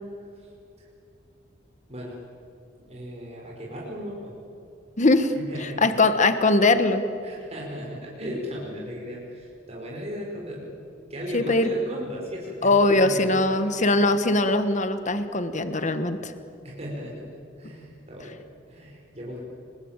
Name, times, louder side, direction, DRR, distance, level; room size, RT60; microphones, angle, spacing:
voice 1, 2.8-4.4 5.4-5.9 7.2-10.7 11.1-13.9 16.6-17.3 17.6-18.4 18.7-19.4, equal, 35° right, -3 dB, 5.1 m, -36 dB
voice 2, 5.0-5.3 5.6-7.0 11.3-11.7 12.6-16.3, left 2 dB, 40° left, 9 dB, 1.4 m, -21 dB
30.0 x 21.5 x 9.0 m, 2.6 s
head